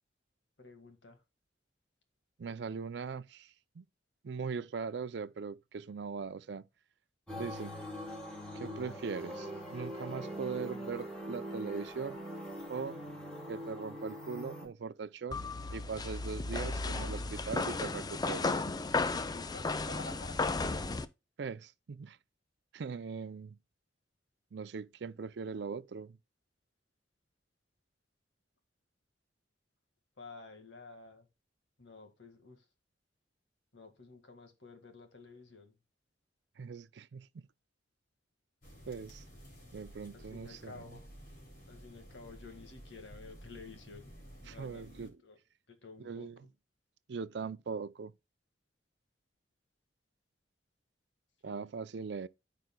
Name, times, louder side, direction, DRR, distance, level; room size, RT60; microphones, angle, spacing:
voice 1, 0.6-1.2 19.5-20.4 30.2-31.3 31.8-32.6 33.7-35.8 40.1-41.1 41.7-45.4 45.7-46.3 51.4-51.7, left 3 dB, 85° left, 1.8 m, -51 dB
voice 2, 2.4-3.8 4.2-6.6 7.3-7.7 8.5-12.2 12.7-13.0 13.5-15.4 15.7-18.6 21.4-22.2 22.7-23.6 24.5-26.2 36.6-37.4 38.9-39.2 39.7-41.0 44.5-45.2 46.0-46.4 47.1-48.1 51.4-52.3, right 5 dB, 65° right, 0.4 m, -40 dB
sound 1, 7.3-14.7, equal, 5° left, 3.0 m, -42 dB
sound 2, 15.3-21.1, left 3 dB, 20° left, 0.5 m, -34 dB
sound 3, 38.6-45.1, equal, 55° left, 4.3 m, -53 dB
14.0 x 5.1 x 2.2 m
head